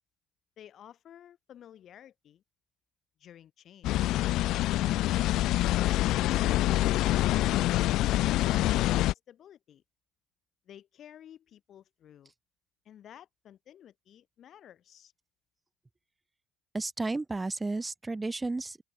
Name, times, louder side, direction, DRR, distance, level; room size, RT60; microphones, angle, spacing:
voice 1, 0.6-2.4 3.2-4.2 4.8-7.2 7.9-9.8 10.7-12.3 12.9-15.1, left 10 dB, 60° left, 2.0 m, -53 dB
sound 1, 3.8-9.1, left 16 dB, 80° left, 0.3 m, -26 dB
voice 2, 16.7-18.8, right 3 dB, 20° right, 0.9 m, -32 dB
open air
cardioid pair, 85°, 0 cm